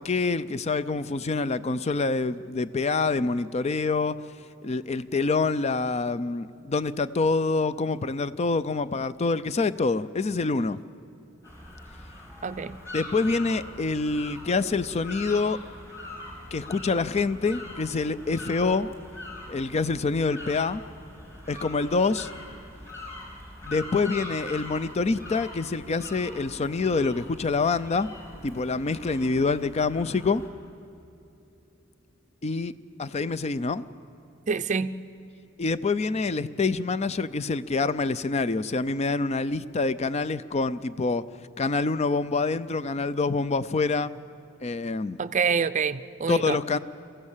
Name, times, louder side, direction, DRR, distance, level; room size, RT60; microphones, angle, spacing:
voice 1, 0.0-4.2 4.6-10.8 12.9-15.6 16.5-18.9 19.5-20.8 21.5-22.3 23.6-28.1 28.4-30.4 32.4-32.7 33.0-33.8 35.6-41.2 41.6-44.1 44.6-45.2 46.3-46.8, left 3 dB, 35° left, 15 dB, 0.5 m, -26 dB
sound 1, 11.4-30.5, left 1 dB, 15° left, 3.6 m, -42 dB
voice 2, 12.4-12.8 34.5-35.0 45.2-46.6, right 5 dB, 40° right, 12 dB, 0.5 m, -26 dB
23.0 x 15.5 x 7.3 m, 2.8 s
head